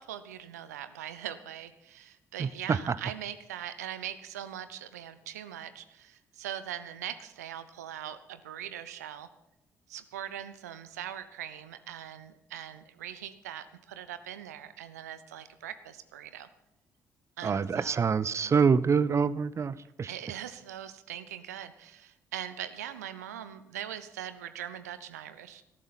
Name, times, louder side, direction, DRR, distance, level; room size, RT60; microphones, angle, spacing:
voice 1, 0.0-9.3 9.9-16.5 17.4-18.1 20.1-25.7, right 10 dB, 75° right, 13 dB, 0.7 m, -41 dB
voice 2, 2.4-3.0 17.4-20.1, right 6 dB, 35° right, 19 dB, 0.6 m, -26 dB
19.0 x 13.5 x 4.2 m, 0.90 s
figure-of-eight pair, 45°, 9 cm